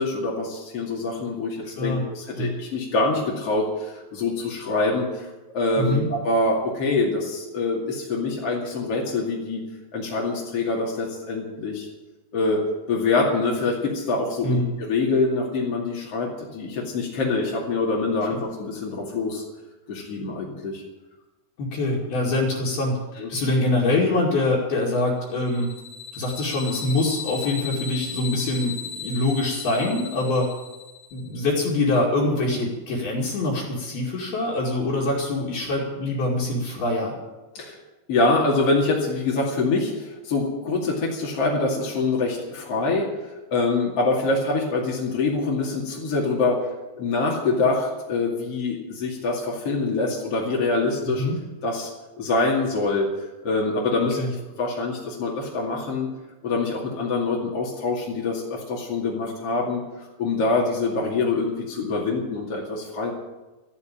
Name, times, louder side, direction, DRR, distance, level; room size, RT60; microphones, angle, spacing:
voice 1, 0.0-9.6 9.9-11.9 12.3-12.6 12.9-19.4 19.9-20.8 23.2-23.3 37.5-37.8 38.1-46.7 47.0-51.2 51.6-51.9 52.2-54.2 54.6-56.1 56.4-63.1, left 3 dB, 40° left, -4 dB, 2.6 m, -25 dB
voice 2, 5.8-6.1 14.4-14.7 21.6-23.0 23.3-25.7 26.1-30.5 31.1-37.1 51.0-51.4 54.2-54.3, left 2 dB, 55° left, -6 dB, 4.0 m, -24 dB
sound 1, 25.3-31.3, left 6 dB, 70° left, 4.9 m, -36 dB
13.5 x 11.5 x 8.7 m, 1.1 s
omnidirectional pair, 5.7 m